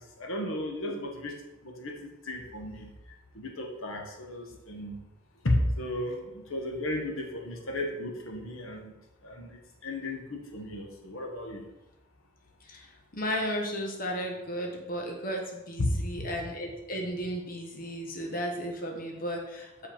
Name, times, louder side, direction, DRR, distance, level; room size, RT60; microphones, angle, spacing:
voice 1, 0.2-1.3 1.6-2.9 3.3-5.0 5.4-8.9 9.2-11.6 15.8-15.9, left 1 dB, 90° left, 2 dB, 1.2 m, -34 dB
voice 2, 12.6-19.9, equal, 45° left, 1 dB, 1.1 m, -34 dB
7.2 x 5.1 x 4.3 m, 0.94 s
head